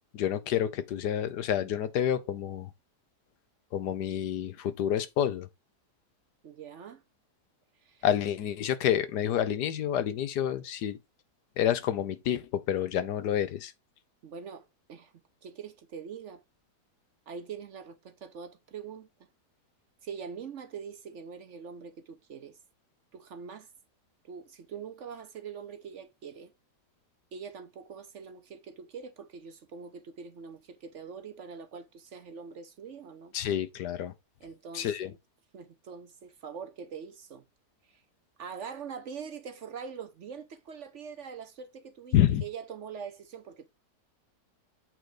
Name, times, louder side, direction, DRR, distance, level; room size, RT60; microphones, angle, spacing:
voice 1, 0.0-2.7 3.7-5.5 8.0-11.0 11.6-13.7 33.3-34.1 34.7-35.1 42.1-42.4, left 10 dB, 85° left, 1.4 m, -28 dB
voice 2, 6.4-7.0 7.8-8.0 14.2-15.1 15.4-16.4 17.3-19.1 20.0-22.6 23.1-23.7 24.2-26.5 27.3-33.3 34.4-35.2 35.5-37.4 37.9-38.0 38.4-42.1 42.4-43.7, right 6 dB, 55° right, 0.9 m, -43 dB
7.9 x 3.9 x 4.9 m
omnidirectional pair, 1.7 m